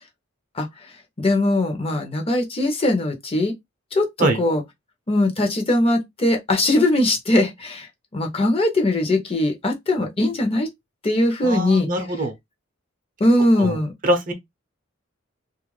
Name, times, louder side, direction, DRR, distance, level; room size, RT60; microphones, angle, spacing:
voice 1, 1.2-3.5 3.9-4.6 5.1-7.9 8.1-10.7 11.0-11.9 13.2-13.9, left 1 dB, 30° left, 0.7 m, -20 dB
voice 2, 11.4-12.3 13.6-13.8 14.0-14.3, right 1 dB, 45° right, 0.6 m, -22 dB
2.4 x 2.1 x 3.1 m
head